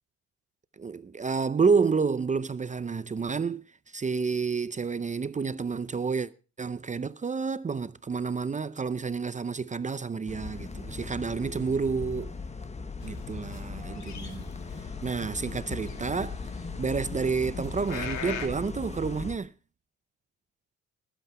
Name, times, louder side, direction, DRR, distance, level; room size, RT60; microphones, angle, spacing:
voice 1, 0.8-3.6 3.9-6.3 6.6-12.3 13.0-14.5 15.0-16.4 16.8-19.5, right 5 dB, 25° right, 0.6 m, -29 dB
sound 1, 10.3-19.4, left 4 dB, 20° left, 1.3 m, -39 dB
sound 2, 13.0-18.5, left 7 dB, 65° left, 2.6 m, -41 dB
20.0 x 8.2 x 4.8 m
cardioid pair, 90°, 30 cm